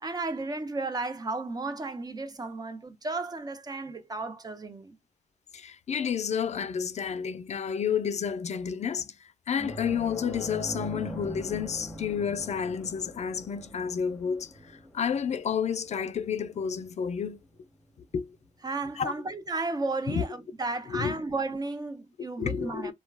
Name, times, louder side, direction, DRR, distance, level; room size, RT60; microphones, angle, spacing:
voice 1, 0.0-5.0 18.6-22.9, right 3 dB, 30° right, 0.5 m, -33 dB
voice 2, 5.5-17.4 18.1-18.4 19.0-19.1 20.1-20.2 20.9-21.2 22.4-22.9, left 7 dB, 55° left, 0.4 m, -30 dB
sound 1, 9.6-18.5 18.8-19.0 21.1-21.2, equal, ahead, 0.9 m, -42 dB
2.3 x 2.1 x 3.2 m
cardioid pair, 95°, 14 cm